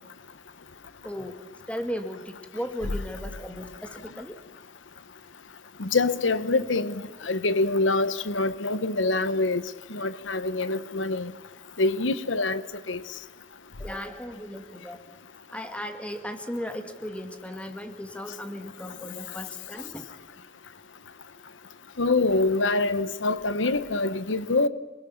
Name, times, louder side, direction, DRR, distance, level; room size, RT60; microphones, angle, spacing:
voice 1, 1.0-1.4 1.7-4.4 13.8-15.0 15.5-20.0, equal, 5° left, 2.0 m, -36 dB
voice 2, 5.8-9.6 9.9-11.3 11.8-12.6 12.9-13.0 22.0-24.7, left 3 dB, 80° left, 1.1 m, -25 dB
28.5 x 21.5 x 7.2 m
head